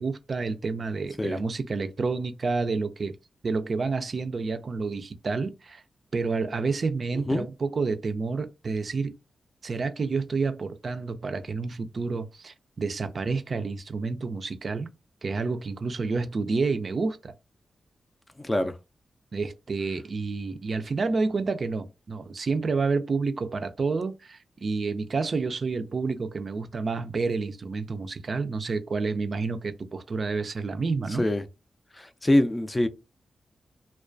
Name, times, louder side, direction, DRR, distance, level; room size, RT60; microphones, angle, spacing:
voice 1, 0.0-3.2 3.4-5.8 6.1-9.2 9.6-14.9 15.2-17.3 19.3-31.3, right 4 dB, 55° right, 0.3 m, -29 dB
voice 2, 18.4-18.8 31.2-31.4 32.0-32.9, left 1 dB, 25° left, 0.4 m, -24 dB
2.3 x 2.2 x 2.4 m
supercardioid pair, 45°, 0 cm